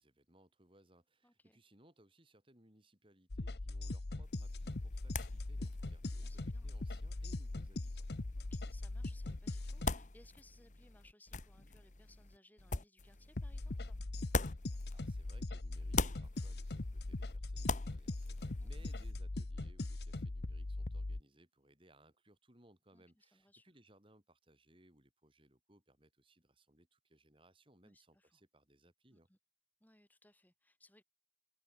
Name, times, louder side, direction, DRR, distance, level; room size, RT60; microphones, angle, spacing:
voice 1, 0.0-8.1 14.9-29.3, right 1 dB, 30° right, 6.6 m, -66 dB
voice 2, 1.2-1.6 6.2-6.7 8.4-14.1 18.6-18.9 22.9-23.7 27.8-28.4 29.1-29.4 29.8-31.0, left 1 dB, 10° left, 5.3 m, -66 dB
sound 1, 3.3-9.9 13.3-21.2, left 2 dB, 60° left, 1.0 m, -41 dB
sound 2, 4.2-15.4 15.7-19.1, left 3 dB, 40° left, 1.2 m, -43 dB
head